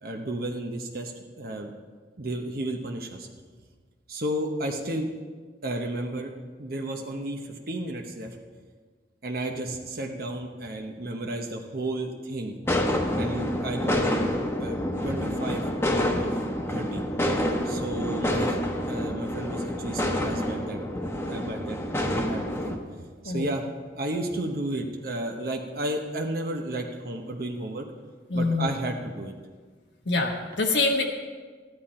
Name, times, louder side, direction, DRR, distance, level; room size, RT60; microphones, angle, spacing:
voice 1, 0.0-1.7 2.2-3.3 4.1-5.1 5.6-6.3 6.6-8.4 9.2-12.5 13.1-14.0 14.6-15.7 15.9-16.3 16.7-17.0 17.6-18.6 18.9-20.8 21.3-23.7 23.9-27.9 28.3-29.3, right 1 dB, 55° right, 2 dB, 0.9 m, -32 dB
sound 1, 12.6-22.8, left 1 dB, 15° left, 1.0 m, -28 dB
voice 2, 28.3-28.7 30.1-31.0, left 3 dB, 70° left, 0 dB, 1.1 m, -25 dB
14.0 x 11.0 x 4.3 m, 1.5 s
head